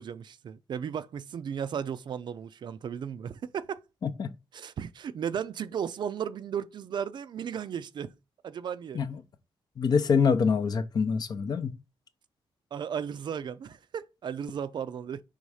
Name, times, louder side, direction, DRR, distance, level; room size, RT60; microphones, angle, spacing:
voice 1, 0.0-3.8 4.5-8.1 8.4-9.0 12.7-15.2, right 8 dB, 50° right, 0.4 m, -35 dB
voice 2, 4.0-4.3 8.9-9.2 9.8-11.8, left 5 dB, 45° left, 0.6 m, -25 dB
5.4 x 3.5 x 4.8 m
wide cardioid pair, 160°, 10 cm